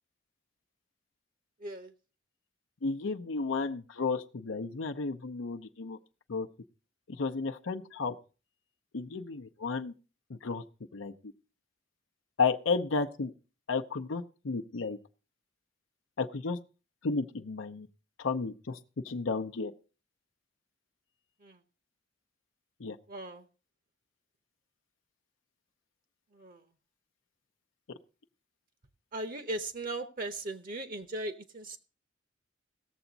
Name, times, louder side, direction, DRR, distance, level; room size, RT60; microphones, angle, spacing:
voice 1, 1.6-1.9 21.4-21.6 23.1-23.5 26.3-26.6 29.1-31.8, right 2 dB, 45° right, 10 dB, 0.8 m, -38 dB
voice 2, 2.8-6.0 6.3-6.5 7.1-8.1 8.9-9.9 10.3-10.6 10.9-11.1 12.4-13.3 13.7-15.0 16.2-16.6 17.0-17.9 18.2-18.8 19.0-19.7 22.8-23.0, left 4 dB, 85° left, 6 dB, 0.7 m, -32 dB
17.5 x 7.0 x 3.9 m, 0.34 s
head